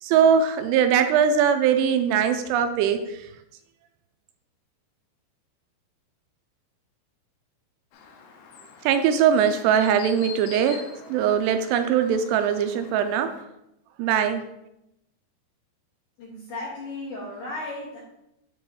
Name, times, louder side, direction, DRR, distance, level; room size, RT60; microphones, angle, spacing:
voice 1, 0.0-3.3 8.8-13.3 14.0-14.5, right 8 dB, 85° right, 8 dB, 2.6 m, -21 dB
Chirp tweet, 7.9-13.4, left 5 dB, 85° left, 1.9 m, -45 dB
voice 2, 16.2-18.0, left 2 dB, 70° left, -5 dB, 2.0 m, -35 dB
7.9 x 3.0 x 4.6 m, 0.84 s
omnidirectional pair, 5.0 m